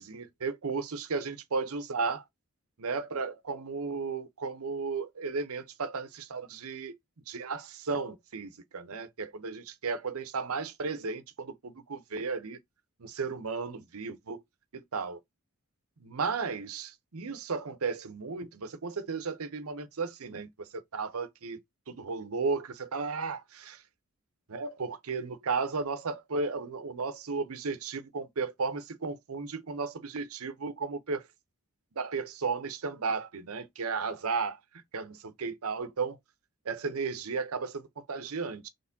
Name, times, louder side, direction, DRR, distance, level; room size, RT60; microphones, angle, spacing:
voice 1, 0.0-2.2 2.8-7.0 7.3-12.6 13.0-14.4 14.7-15.2 16.0-21.6 21.9-23.8 24.5-31.3 32.0-34.6 34.9-36.2 36.6-38.7, right 4 dB, 90° right, 0.7 m, -34 dB
4.3 x 3.2 x 2.7 m
head